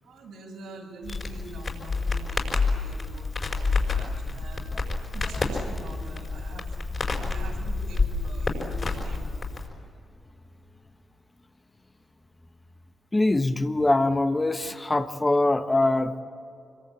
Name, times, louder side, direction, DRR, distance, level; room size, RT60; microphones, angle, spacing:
voice 1, 0.0-4.7 5.1-6.7 7.2-9.3, right 2 dB, 85° right, -1 dB, 6.7 m, -45 dB
Crackle, 1.0-9.7, left 3 dB, 40° left, 5.3 m, -29 dB
voice 2, 13.1-16.2, left 2 dB, 20° left, 8 dB, 1.4 m, -23 dB
25.5 x 23.0 x 8.6 m, 2.5 s
cardioid pair, 70°, 0 cm